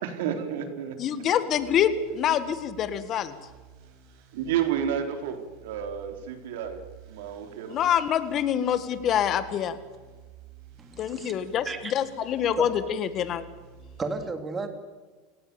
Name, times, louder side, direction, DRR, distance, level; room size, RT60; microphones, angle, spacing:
voice 1, 0.0-1.0 4.3-6.8 7.1-7.8, right 9 dB, 80° right, 6 dB, 4.0 m, -30 dB
voice 2, 1.0-3.3 7.7-9.8 11.0-13.4, left 9 dB, 35° left, 12 dB, 1.8 m, -26 dB
sound 1, 1.5-14.0, right 7 dB, 65° right, 7.0 m, -51 dB
voice 3, 10.8-11.3 11.6-11.9 12.6-12.7 14.0-14.7, right 4 dB, 20° right, 7 dB, 3.0 m, -33 dB
28.5 x 18.0 x 7.1 m, 1.3 s
supercardioid pair, 140°, 0 cm